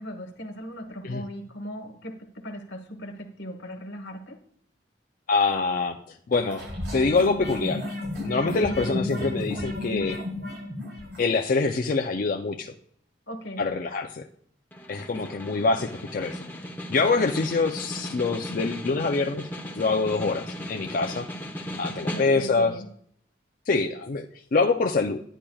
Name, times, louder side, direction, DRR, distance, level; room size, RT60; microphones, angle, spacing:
voice 1, 0.0-4.4 13.3-13.7 15.1-15.3 22.1-22.9, equal, 90° left, 6 dB, 1.2 m, -38 dB
voice 2, 5.3-6.0 6.3-6.6 6.9-7.8 8.2-10.2 11.2-12.7 13.6-14.2 14.9-16.4 16.9-19.5 19.8-21.3 21.8-22.8 23.7-25.2, left 3 dB, 50° left, 4 dB, 0.5 m, -25 dB
sound 1, 6.3-11.3, left 2 dB, 70° right, 2.5 m, -32 dB
Snare drum, 14.7-22.7, equal, 10° left, 0.9 m, -37 dB
10.0 x 9.9 x 2.3 m, 0.63 s
head